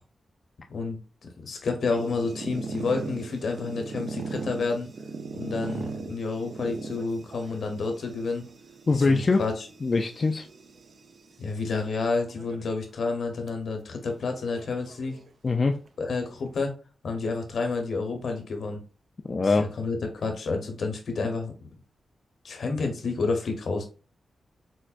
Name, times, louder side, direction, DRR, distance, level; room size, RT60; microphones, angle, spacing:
voice 1, 1.4-4.9 5.3-8.4 8.9-9.7 11.4-15.2 16.0-16.7 17.0-18.8 19.4-21.7 22.4-23.8, left 4 dB, 70° left, 4 dB, 0.8 m, -30 dB
sound 1, 1.9-11.4 12.2-12.7 13.1-13.2 13.5-13.6 14.5-15.6, right 4 dB, 65° right, 0.4 m, -39 dB
voice 2, 8.9-9.4 9.8-10.4 15.4-15.8 19.3-19.7, left 3 dB, 45° left, 3 dB, 0.3 m, -22 dB
4.4 x 2.1 x 2.4 m, 0.35 s
cardioid pair, 60°, 0 cm